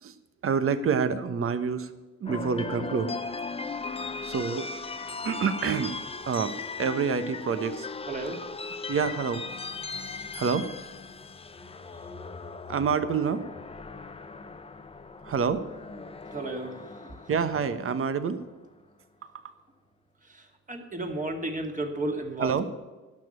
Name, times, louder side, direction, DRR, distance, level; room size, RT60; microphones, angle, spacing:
voice 1, 0.4-1.9 2.2-3.1 4.2-4.7 5.2-5.9 6.2-7.9 8.9-9.4 10.3-10.7 12.7-13.4 15.2-15.6 17.3-18.4 19.2-19.5 22.4-22.7, right 6 dB, 45° right, 12 dB, 1.1 m, -27 dB
sound 1, 2.3-18.5, left 4 dB, 20° left, 0.8 m, -38 dB
voice 2, 8.1-8.4 16.3-17.2 20.3-22.7, right 2 dB, 25° right, 3 dB, 2.4 m, -33 dB
12.0 x 6.5 x 8.9 m, 1.2 s
cardioid pair, 90°, 30 cm